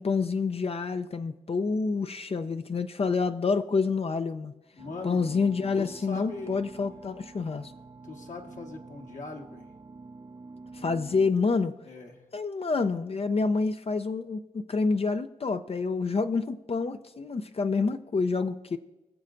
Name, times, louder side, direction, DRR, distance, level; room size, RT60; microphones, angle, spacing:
voice 1, 0.0-4.5 5.0-7.7 10.8-11.7 12.3-18.8, left 4 dB, 45° left, 9 dB, 0.6 m, -28 dB
voice 2, 4.7-5.2 5.7-6.6 8.0-9.7 11.8-12.2, left 3 dB, 60° left, 1 dB, 1.6 m, -41 dB
sound 1, 4.8-11.3, right 3 dB, 25° right, 0.6 m, -47 dB
21.5 x 7.3 x 2.6 m, 1.1 s
cardioid pair, 55°, 14 cm